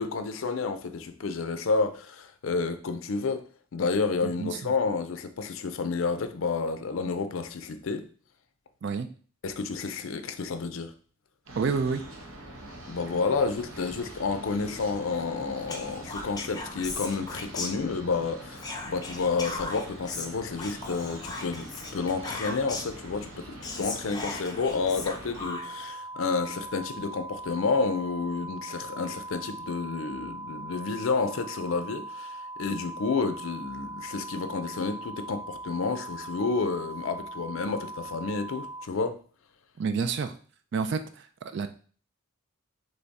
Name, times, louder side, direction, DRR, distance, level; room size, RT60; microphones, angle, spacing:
voice 1, 0.0-3.4 3.7-8.1 9.4-10.9 12.9-39.2, left 4 dB, 75° left, 0.5 m, -30 dB
voice 2, 4.2-4.7 8.8-9.1 11.5-12.0 39.8-40.3 40.7-41.7, right 5 dB, 55° right, 0.3 m, -29 dB
sound 1, 11.5-25.5, right 1 dB, 75° right, 1.1 m, -44 dB
Whispering, 15.7-18.2 18.6-23.0 23.3-23.4 23.6-25.9, left 3 dB, 20° left, 0.5 m, -38 dB
sound 2, 25.4-38.9, right 2 dB, 20° right, 0.7 m, -40 dB
3.5 x 3.3 x 4.0 m
head